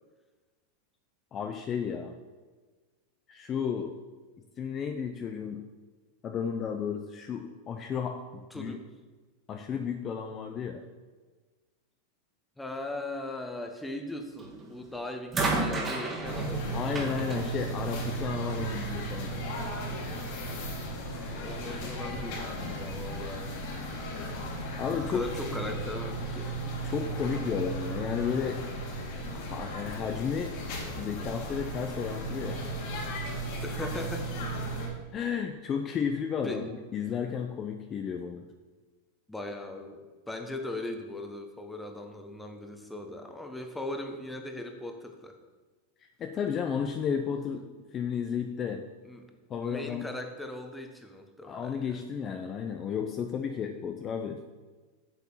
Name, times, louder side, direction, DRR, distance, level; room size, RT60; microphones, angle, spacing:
voice 1, 1.3-2.2 3.3-3.9 4.6-5.6 6.2-8.7 9.5-10.8 16.7-19.4 24.8-25.2 26.8-28.6 29.3-30.6 30.9-32.6 35.1-38.4 46.2-47.7 47.9-48.8 49.5-50.1 51.4-54.4, left 7 dB, 30° left, 5 dB, 0.7 m, -33 dB
voice 2, 8.5-8.9 12.6-16.8 18.5-18.9 21.3-23.5 25.1-26.6 33.6-34.4 36.4-36.6 39.3-45.4 49.0-49.3 49.6-52.0, left 1 dB, 5° left, 4 dB, 1.2 m, -39 dB
sound 1, 14.4-14.7 15.3-18.6 19.6-19.7, right 3 dB, 20° right, 1.9 m, -33 dB
sound 2, 16.2-34.9, right 1 dB, 60° left, 2.9 m, -35 dB
8.0 x 7.2 x 5.7 m, 1.3 s
supercardioid pair, 135°, 0 cm